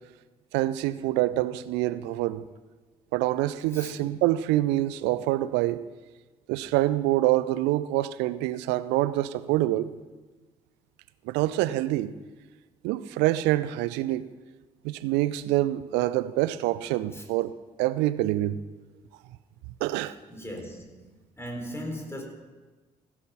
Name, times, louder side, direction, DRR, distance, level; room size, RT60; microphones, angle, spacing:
voice 1, 0.5-2.4 3.1-5.8 6.5-9.9 11.2-12.1 12.8-14.2 14.8-17.5 17.8-18.6 19.8-20.1, right 15 dB, 65° right, 15 dB, 0.5 m, -26 dB
voice 2, 20.3-22.2, equal, 15° left, 1 dB, 3.7 m, -38 dB
15.5 x 7.2 x 5.6 m, 1.3 s
figure-of-eight pair, 40°, 19 cm